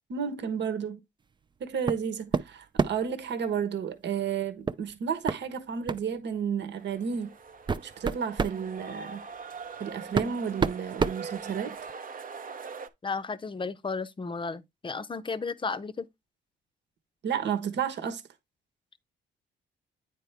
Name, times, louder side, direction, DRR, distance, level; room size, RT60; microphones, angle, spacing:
voice 1, 0.1-1.0 1.6-7.3 7.8-9.2 9.8-11.8 17.2-18.2, right 7 dB, 60° right, 1.2 m, -32 dB
sound 1, 1.9-2.1 2.3-3.1 4.7-4.8 5.3-5.4 5.9-6.1 6.9-7.0 7.5-8.6 9.7-9.8 10.1-11.9, right 5 dB, 25° right, 0.4 m, -29 dB
sound 2, 6.8-12.9, right 5 dB, 45° right, 0.8 m, -42 dB
voice 2, 13.0-16.1, left 4 dB, 25° left, 0.7 m, -33 dB
9.1 x 4.5 x 3.4 m
cardioid pair, 90°, 20 cm